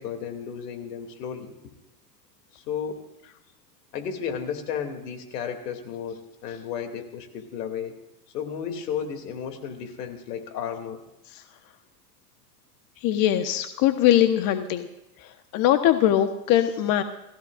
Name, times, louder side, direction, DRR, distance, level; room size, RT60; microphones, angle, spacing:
voice 1, 0.0-1.5 2.5-3.0 3.9-8.0 8.3-11.0, left 7 dB, 80° left, 5 dB, 2.9 m, -33 dB
voice 2, 13.0-14.9 15.2-17.0, left 12 dB, 45° left, 7 dB, 1.3 m, -21 dB
29.5 x 16.0 x 2.6 m, 0.93 s
supercardioid pair, 120°, 47 cm